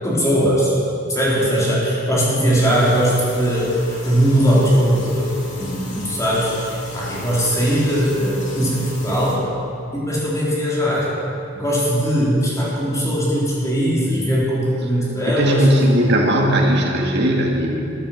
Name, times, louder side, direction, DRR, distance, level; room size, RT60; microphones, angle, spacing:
voice 1, 0.0-0.7 1.1-5.3 5.6-9.4 9.9-11.1 11.5-15.7, equal, 15° left, -7 dB, 3.7 m, -19 dB
sound 1, 2.5-9.4, left 1 dB, 35° left, 2.7 m, -36 dB
voice 2, 15.3-17.8, right 1 dB, 55° right, 0 dB, 1.9 m, -17 dB
14.0 x 9.6 x 7.2 m, 2.8 s
head